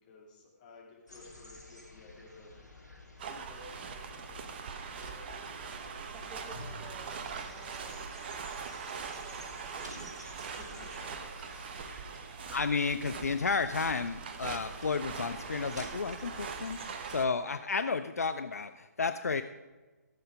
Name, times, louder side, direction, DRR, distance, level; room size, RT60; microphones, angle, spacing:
voice 1, 0.0-2.6 3.3-5.3 10.6-11.5, left 3 dB, 30° left, -2 dB, 3.1 m, -54 dB
sound 1, 1.1-16.9, left 1 dB, 85° left, 3.0 m, -52 dB
sound 2, 3.2-17.3, right 6 dB, 35° right, 1.0 m, -42 dB
sound 3, 4.0-16.4, right 1 dB, 70° right, 3.0 m, -55 dB
voice 2, 6.1-7.2 7.5-10.8, right 3 dB, 10° right, 4 dB, 0.6 m, -54 dB
voice 3, 12.5-19.4, left 4 dB, 60° left, 11 dB, 0.5 m, -32 dB
15.0 x 7.9 x 5.0 m, 1.2 s
figure-of-eight pair, 135°, 9 cm